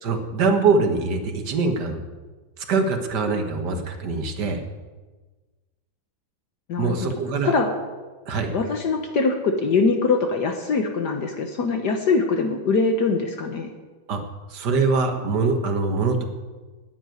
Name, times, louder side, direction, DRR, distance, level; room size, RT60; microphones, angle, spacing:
voice 1, 0.0-2.0 2.7-4.6 6.8-7.5 8.3-8.5 14.1-14.2 14.5-16.2, right 4 dB, 60° right, 6 dB, 1.8 m, -23 dB
voice 2, 6.7-7.1 7.4-7.7 8.5-13.7, left 4 dB, 60° left, 5 dB, 1.6 m, -23 dB
9.8 x 9.8 x 9.2 m, 1.3 s
omnidirectional pair, 2.1 m